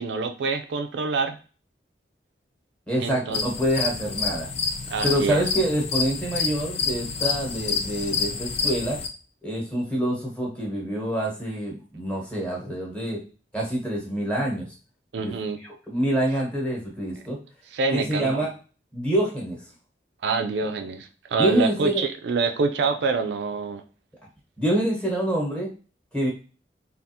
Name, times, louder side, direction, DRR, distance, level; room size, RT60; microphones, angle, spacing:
voice 1, 0.0-1.4 3.0-3.4 4.9-5.4 15.1-15.6 17.7-18.5 20.2-23.8, right 4 dB, 75° right, 6 dB, 0.4 m, -26 dB
voice 2, 2.9-4.5 5.0-9.0 9.4-13.2 13.5-14.7 15.2-15.3 15.9-17.4 17.9-18.5 18.9-19.6 21.3-22.0 24.6-25.7 26.1-26.3, right 1 dB, 5° left, -2 dB, 1.0 m, -26 dB
sound 1, 3.3-9.1, left 5 dB, 35° left, 0.4 m, -28 dB
3.5 x 2.4 x 2.7 m, 0.36 s
head